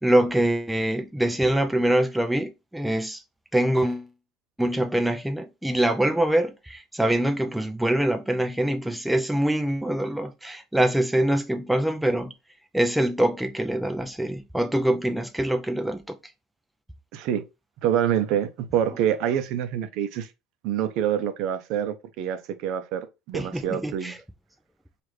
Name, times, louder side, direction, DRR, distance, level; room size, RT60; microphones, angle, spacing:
voice 1, 0.0-3.2 3.5-4.1 4.6-12.3 12.7-16.2 23.3-24.2, right 1 dB, 5° right, 0.4 m, -24 dB
voice 2, 17.1-17.4 17.8-20.3 20.6-24.1, right 10 dB, 65° right, 0.5 m, -26 dB
4.7 x 2.4 x 3.2 m
cardioid pair, 140°, 0 cm